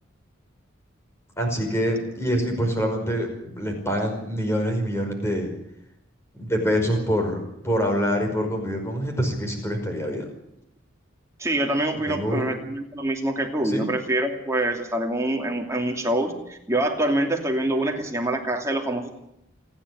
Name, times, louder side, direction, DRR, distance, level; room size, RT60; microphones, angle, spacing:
voice 1, 1.4-5.5 6.3-10.2 12.0-12.4 13.6-13.9, equal, 15° left, 3 dB, 5.2 m, -25 dB
voice 2, 11.4-19.1, right 1 dB, 15° right, 2 dB, 2.7 m, -25 dB
28.0 x 10.5 x 9.9 m, 0.81 s
head